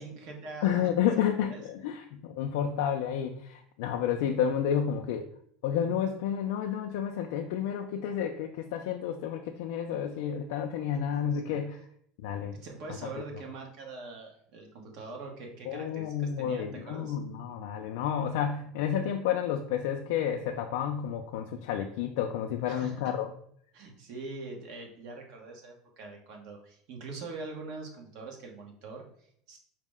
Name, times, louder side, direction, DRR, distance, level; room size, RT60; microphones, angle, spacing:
voice 1, 0.0-0.9 1.2-1.6 4.0-4.2 11.0-11.6 12.3-17.2 22.7-23.0 23.7-29.6, right 3 dB, 55° right, 1 dB, 0.9 m, -43 dB
voice 2, 0.6-5.3 5.6-11.8 12.2-12.6 15.7-23.3, left 9 dB, 75° left, 3 dB, 0.3 m, -30 dB
4.5 x 2.1 x 3.5 m, 0.66 s
supercardioid pair, 140°, 0 cm